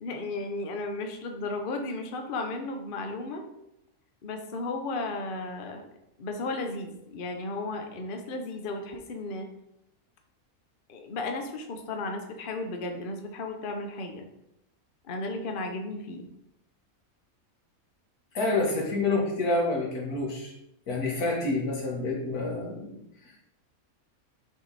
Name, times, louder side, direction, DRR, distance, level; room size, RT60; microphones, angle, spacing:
voice 1, 0.0-3.5 4.2-5.8 6.2-9.5 10.9-14.3 15.0-16.3, left 2 dB, 45° left, 4 dB, 0.9 m, -34 dB
voice 2, 18.3-20.5 20.9-23.0, left 2 dB, 90° left, -1 dB, 2.0 m, -28 dB
6.3 x 4.7 x 4.1 m, 0.83 s
omnidirectional pair, 1.5 m